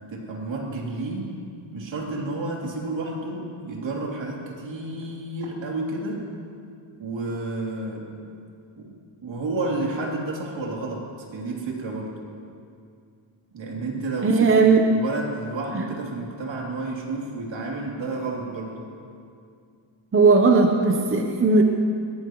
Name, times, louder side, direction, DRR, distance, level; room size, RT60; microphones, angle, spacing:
voice 1, 0.1-1.4 1.7-6.3 7.0-8.1 8.8-12.2 13.5-18.8, right 2 dB, 65° right, -2 dB, 3.2 m, -31 dB
voice 2, 14.2-14.8 15.7-15.8 20.1-21.6, right 4 dB, 25° right, 3 dB, 0.9 m, -17 dB
21.0 x 17.5 x 3.1 m, 2.4 s
wide cardioid pair, 135°, 49 cm